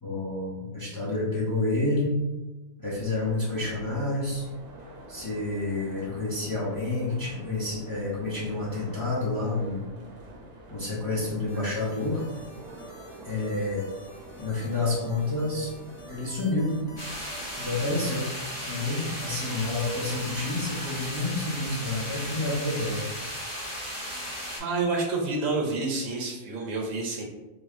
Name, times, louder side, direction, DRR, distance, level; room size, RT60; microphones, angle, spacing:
voice 1, 0.0-2.2 2.8-4.4 5.1-9.9 10.7-12.2 13.2-13.8 14.4-15.7 16.1-16.8 17.6-18.3 18.6-23.1, left 2 dB, 25° left, -7 dB, 0.5 m, -29 dB
sound 1, 2.9-18.0, right 1 dB, 65° right, 0.7 m, -47 dB
sound 2, 11.5-21.3, equal, 60° left, 0.7 m, -49 dB
sound 3, 17.0-24.6, equal, 90° left, 1.9 m, -36 dB
voice 2, 24.6-27.2, right 3 dB, 85° right, 0 dB, 1.0 m, -28 dB
3.2 x 2.1 x 2.4 m, 1.1 s
omnidirectional pair, 1.3 m